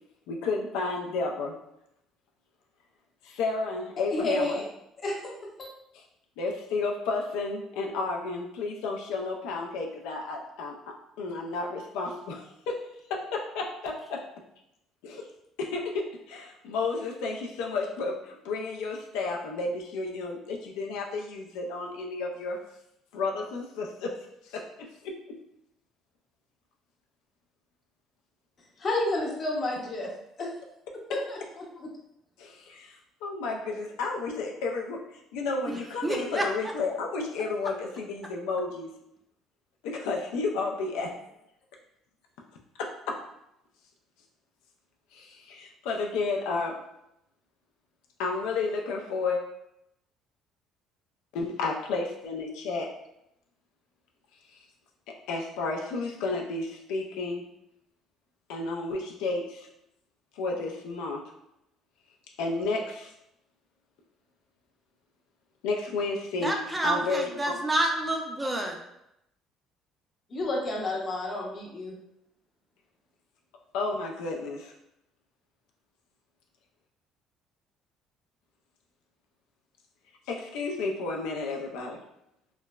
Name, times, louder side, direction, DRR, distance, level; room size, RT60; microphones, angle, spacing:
voice 1, 0.3-1.5 3.2-4.6 5.9-6.0 6.4-10.7 11.2-14.2 15.0-15.3 15.6-22.6 23.1-24.2 24.4-25.2 32.4-38.9 39.8-41.1 42.8-43.2 45.1-46.8 48.2-49.4 51.3-52.9 54.5-54.6 55.1-57.4 58.5-59.7 60.4-61.2 62.4-63.1 65.6-67.6 73.7-74.7 80.3-82.0, left 3 dB, 90° left, 1 dB, 0.3 m, -32 dB
voice 2, 4.1-4.6 5.0-5.3 5.6-5.7 28.8-30.1 30.4-30.5 31.1-31.9 70.3-72.0, left 2 dB, 40° left, -2 dB, 0.7 m, -30 dB
voice 3, 36.0-36.4 66.4-68.8, right 1 dB, 10° right, 2 dB, 0.4 m, -28 dB
3.0 x 2.0 x 2.2 m, 0.82 s
cardioid pair, 110°, 0 cm